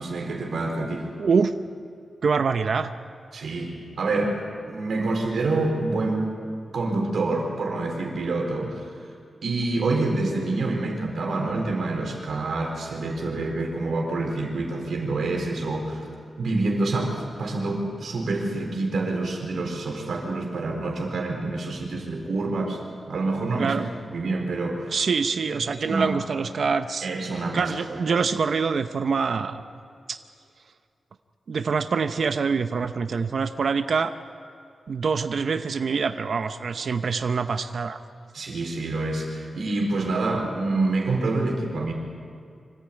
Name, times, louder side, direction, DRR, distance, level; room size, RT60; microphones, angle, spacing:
voice 1, 0.0-1.1 3.3-4.4 4.7-6.2 6.7-8.9 9.4-16.1 16.4-23.7 24.1-24.9 25.5-26.1 27.0-28.0 38.3-41.9, right 2 dB, 75° right, 1 dB, 4.2 m, -27 dB
voice 2, 1.2-1.5 2.2-2.9 23.6-23.9 24.9-27.1 27.5-29.6 30.1-30.2 31.5-34.1 34.9-38.0, right 5 dB, 60° right, 8 dB, 0.7 m, -25 dB
25.5 x 14.0 x 8.9 m, 2.4 s
wide cardioid pair, 165°, 0 cm